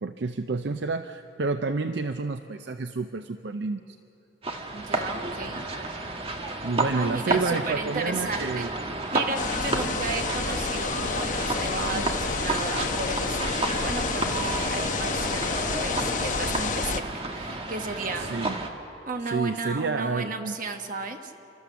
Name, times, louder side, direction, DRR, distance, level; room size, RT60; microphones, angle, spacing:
voice 1, 0.0-4.0 6.6-8.7 11.9-12.1 18.2-18.6 19.2-20.6, right 4 dB, 70° right, 9 dB, 0.6 m, -29 dB
sound 1, 4.4-18.7, right 2 dB, 30° right, 1.4 m, -31 dB
voice 2, 4.7-5.6 6.9-8.7 9.1-18.3 19.1-21.3, right 3 dB, 50° right, 5 dB, 1.4 m, -34 dB
sound 2, 9.3-17.0, left 4 dB, 45° left, 0.9 m, -29 dB
29.5 x 13.0 x 6.9 m, 2.8 s
head